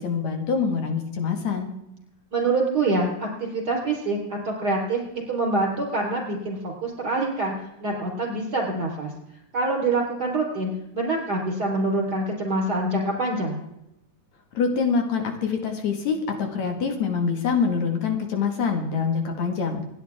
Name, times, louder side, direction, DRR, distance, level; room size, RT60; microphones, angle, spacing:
voice 1, 0.0-1.7 14.5-19.8, left 5 dB, 65° left, 4 dB, 3.1 m, -25 dB
voice 2, 2.3-5.0 5.3-7.5 7.8-9.1 9.5-13.6, right 2 dB, 30° right, -1 dB, 4.4 m, -25 dB
27.5 x 10.5 x 3.6 m, 0.87 s
omnidirectional pair, 3.5 m